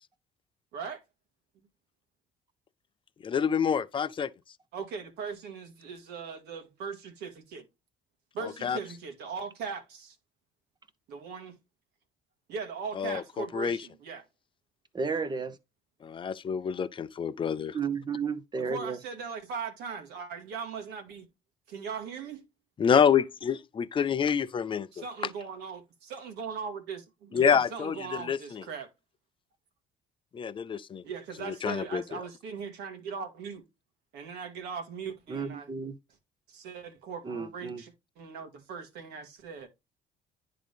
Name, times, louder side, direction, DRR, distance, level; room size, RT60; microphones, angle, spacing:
voice 1, 3.2-4.3 8.4-8.8 13.0-13.8 16.0-17.8 22.8-25.0 27.3-28.6 30.3-31.0 31.4-32.2, left 7 dB, 30° left, 0.5 m, -27 dB
voice 2, 4.7-7.7 8.3-10.2 11.1-11.6 12.5-14.2 18.7-21.3 21.7-22.4 24.9-28.9 31.0-33.7 34.1-35.7 36.5-39.7, right 5 dB, 80° right, 1.9 m, -39 dB
voice 3, 14.9-15.6 17.7-19.0 35.3-36.0 37.2-37.8, right 5 dB, 25° right, 1.0 m, -32 dB
10.0 x 3.8 x 3.4 m
cardioid pair, 110°, 17 cm